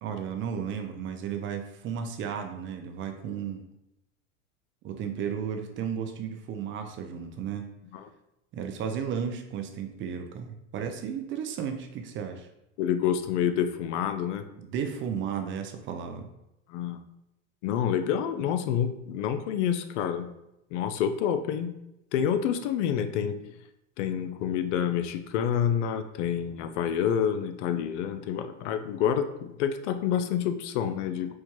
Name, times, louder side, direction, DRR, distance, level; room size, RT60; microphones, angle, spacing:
voice 1, 0.0-3.6 4.8-7.7 8.5-12.5 14.6-16.3, right 7 dB, 35° right, 6 dB, 0.4 m, -34 dB
voice 2, 12.8-14.4 16.7-17.0 17.6-20.3 20.7-21.7 22.1-23.3 24.0-31.4, left 8 dB, 70° left, 9 dB, 0.5 m, -28 dB
4.4 x 2.2 x 3.0 m, 0.86 s
hypercardioid pair, 95°, 37 cm